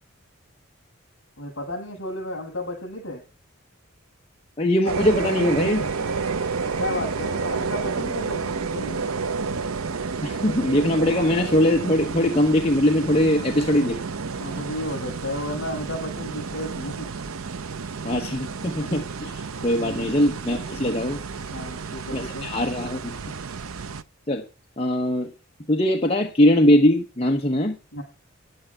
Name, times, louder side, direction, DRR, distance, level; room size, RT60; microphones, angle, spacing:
voice 1, 1.4-3.2 6.8-9.1 14.4-17.1 19.5-20.2 21.5-22.5 27.9-28.0, left 1 dB, 65° left, 2 dB, 6.8 m, -33 dB
voice 2, 4.6-5.9 10.2-14.0 18.0-21.2 22.1-23.1 24.3-24.4 24.8-25.3 25.7-27.8, left 1 dB, 30° left, 1 dB, 1.1 m, -21 dB
sound 1, 4.8-24.0, right 5 dB, 85° right, 0.7 m, -30 dB
10.5 x 9.4 x 5.5 m, 0.32 s
head